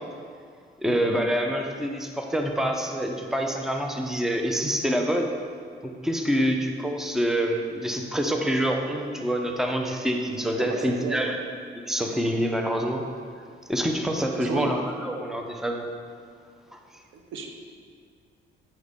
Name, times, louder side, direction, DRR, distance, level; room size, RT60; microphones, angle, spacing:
voice 1, 0.8-5.3 5.8-11.4 11.8-13.0 13.7-15.9 16.7-16.8, equal, ahead, 3 dB, 0.7 m, -26 dB
voice 2, 10.6-11.3 14.4-14.8 17.1-17.5, right 4 dB, 80° right, 3 dB, 0.9 m, -34 dB
8.7 x 6.2 x 3.6 m, 2.2 s
cardioid pair, 90°, 20 cm